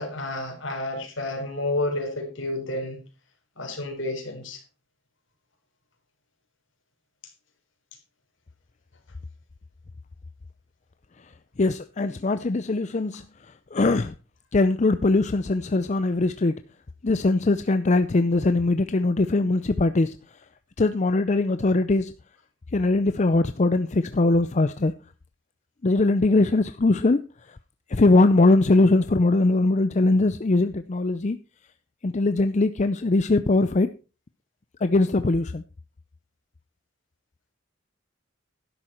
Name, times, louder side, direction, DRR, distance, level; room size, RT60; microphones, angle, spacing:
voice 1, 0.0-3.0 3.6-4.6, left 2 dB, 65° left, 3.9 m, -30 dB
voice 2, 11.6-13.2 13.7-14.1 14.5-16.5 17.0-20.1 20.8-22.1 22.7-24.9 25.8-27.2 27.9-31.4 32.0-33.9 34.8-35.6, left 2 dB, 35° left, 0.5 m, -21 dB
12.0 x 10.5 x 4.4 m
head